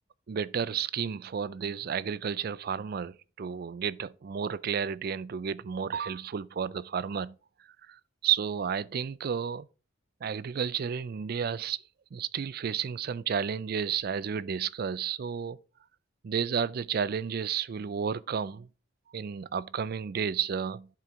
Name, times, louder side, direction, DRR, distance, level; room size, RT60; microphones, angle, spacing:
voice 1, 0.3-7.4 7.9-9.7 10.2-11.8 12.1-15.6 16.2-18.7 19.1-20.9, right 7 dB, 50° right, 0.4 m, -32 dB
11.0 x 4.5 x 3.7 m
head